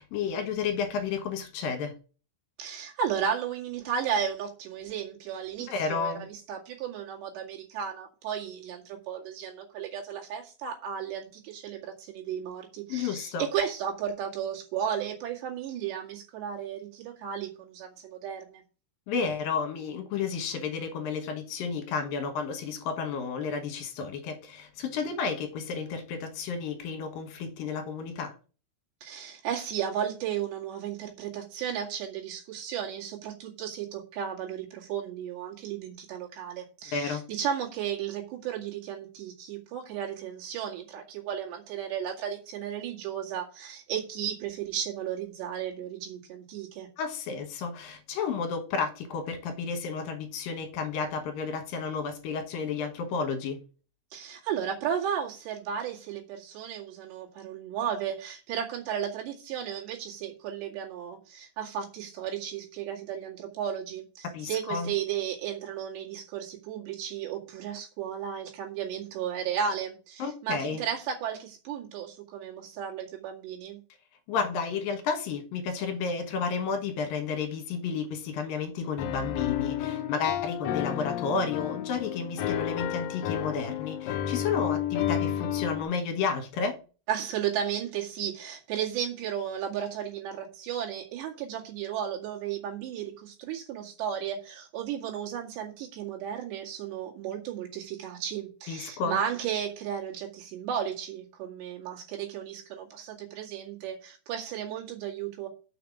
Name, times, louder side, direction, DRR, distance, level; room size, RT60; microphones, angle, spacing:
voice 1, 0.0-1.9 5.7-6.3 12.9-13.5 19.1-28.3 36.9-37.2 47.0-53.6 64.3-64.9 70.2-70.8 74.3-86.8 98.7-99.2, left 5 dB, 65° left, 2.6 m, -32 dB
voice 2, 2.6-18.6 29.0-46.9 54.1-73.8 87.1-105.5, right 8 dB, 75° right, 4.2 m, -34 dB
Piano, 79.0-85.8, left 11 dB, 85° left, 1.9 m, -31 dB
6.9 x 5.7 x 7.2 m
omnidirectional pair, 5.1 m